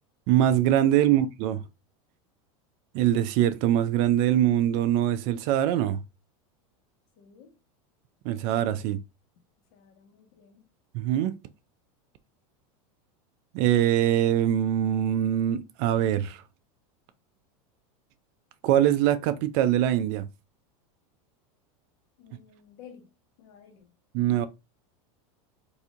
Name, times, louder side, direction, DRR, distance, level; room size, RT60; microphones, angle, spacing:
voice 1, 0.3-1.6 2.9-6.0 8.2-9.0 10.9-11.4 13.5-16.4 18.6-20.3 24.1-24.5, right 11 dB, 50° right, 0.5 m, -23 dB
voice 2, 7.2-7.6 9.7-10.6 22.2-23.1 23.4-23.9, left 7 dB, 60° left, 1.2 m, -52 dB
4.1 x 2.7 x 2.4 m
supercardioid pair, 150°, 18 cm